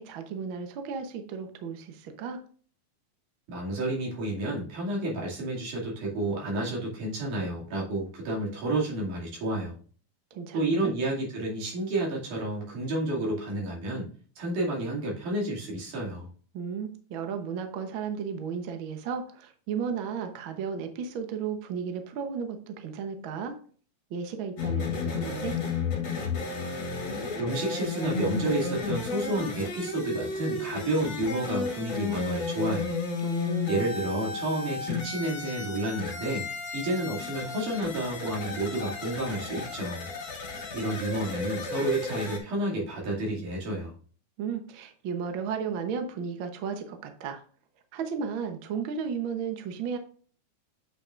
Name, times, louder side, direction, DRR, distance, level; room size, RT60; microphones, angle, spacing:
voice 1, 0.0-2.4 10.3-10.9 16.5-23.5 24.1-25.6 33.2-33.9 44.4-47.4 47.9-50.0, right 6 dB, 65° right, 6 dB, 1.3 m, -34 dB
voice 2, 3.5-9.7 10.5-14.1 14.4-16.3 27.4-32.9 33.7-40.1 40.7-43.9, right 1 dB, 85° right, -4 dB, 4.0 m, -30 dB
sound 1, 24.6-42.4, left 4 dB, 45° left, 2.4 m, -33 dB
8.4 x 5.8 x 2.5 m, 0.43 s
omnidirectional pair, 3.5 m